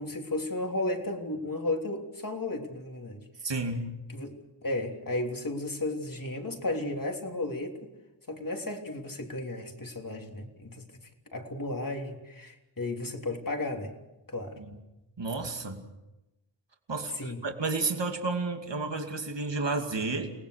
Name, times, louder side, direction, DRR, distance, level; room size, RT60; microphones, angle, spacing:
voice 1, 0.0-3.2 4.1-7.9 8.3-14.0 14.3-14.6 17.1-17.4, left 2 dB, 50° left, 2 dB, 3.4 m, -34 dB
voice 2, 3.4-3.9 14.6-14.8 15.2-15.8 16.9-20.3, right 3 dB, 70° right, 4 dB, 2.6 m, -31 dB
29.5 x 19.5 x 6.6 m, 0.99 s
wide cardioid pair, 75°, 44 cm